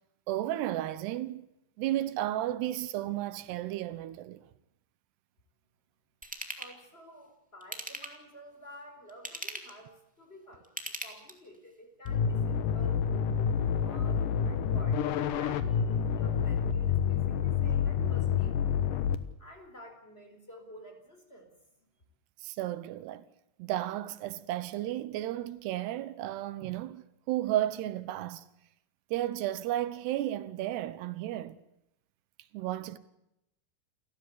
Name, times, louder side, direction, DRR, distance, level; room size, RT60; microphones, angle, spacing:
voice 1, 0.3-1.5 1.8-4.4 22.4-23.3 23.6-28.5 29.1-31.6 32.5-33.0, right 13 dB, 85° right, 3.2 m, -33 dB
Ratchet pawl / Tools, 6.2-6.7 7.6-8.3 9.1-9.8 10.6-11.5 12.0-12.1, right 1 dB, 5° right, 1.7 m, -40 dB
voice 2, 6.6-10.7 11.0-13.1 13.8-18.6 19.4-21.5, equal, 15° left, 4.1 m, -51 dB
sound 1, 12.1-19.2, left 7 dB, 65° left, 2.5 m, -28 dB
29.0 x 15.5 x 8.4 m
omnidirectional pair, 4.7 m